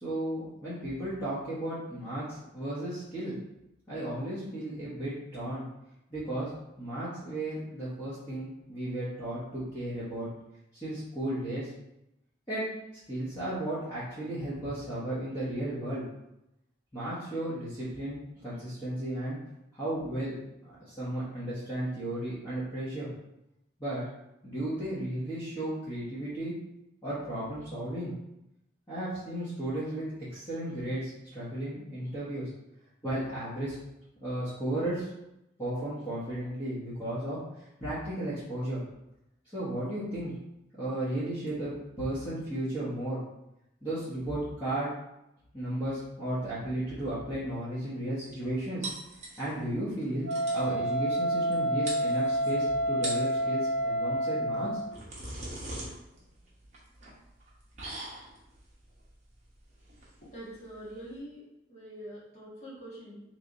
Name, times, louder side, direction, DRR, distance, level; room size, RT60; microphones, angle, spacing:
voice 1, 0.0-3.4 3.9-5.6 6.1-6.5 6.8-10.3 10.7-11.7 12.5-12.6 13.1-16.0 16.9-19.4 19.7-20.3 20.6-23.1 23.8-24.0 24.4-26.5 27.0-28.1 28.9-30.0 30.3-32.5 33.0-33.7 34.2-35.1 35.6-37.4 37.8-38.8 39.5-40.3 40.8-41.7 42.0-43.2 43.8-44.9 45.5-48.9 49.4-50.3 50.5-54.7, right 1 dB, 20° left, -14 dB, 1.3 m, -34 dB
sound 1, 48.8-49.7 50.0-50.1 50.3-50.7 51.5-51.6 51.9-52.5 52.9-53.4 54.5-61.2, right 1 dB, 35° right, 1.0 m, -42 dB
Wind instrument woodwind instrument, 50.2-54.9, right 1 dB, 75° right, 0.4 m, -29 dB
voice 2, 60.3-61.4 61.7-63.2, right 1 dB, 35° left, -8 dB, 1.5 m, -44 dB
3.3 x 2.9 x 3.9 m, 0.86 s
head